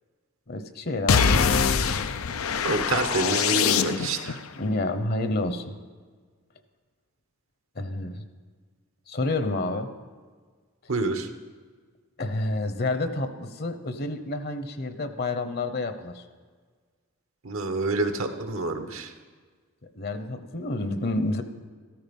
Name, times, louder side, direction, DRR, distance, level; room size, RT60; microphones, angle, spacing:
voice 1, 0.5-1.4 4.6-5.6 7.8-8.2 9.1-9.9 12.2-16.2 19.9-21.4, left 2 dB, 50° left, 9 dB, 1.0 m, -29 dB
sound 1, 1.1-4.3, left 6 dB, 85° left, 0.6 m, -23 dB
voice 2, 2.6-4.4 10.9-11.3 17.4-19.1, right 3 dB, 70° right, 7 dB, 1.2 m, -27 dB
14.0 x 13.5 x 5.4 m, 1.5 s
head